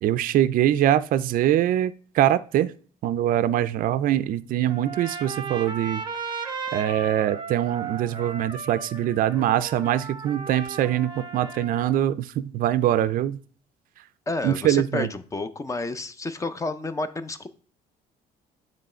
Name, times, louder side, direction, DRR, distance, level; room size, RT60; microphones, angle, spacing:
voice 1, 0.0-2.7 3.0-6.0 6.7-13.4 14.4-15.1, right 12 dB, 55° right, 14 dB, 0.4 m, -23 dB
Trumpet, 4.7-12.0, right 4 dB, 25° right, 0.7 m, -36 dB
voice 2, 14.3-17.5, left 2 dB, 20° left, 12 dB, 0.5 m, -30 dB
7.6 x 3.1 x 4.3 m, 0.42 s
cardioid pair, 110°, 17 cm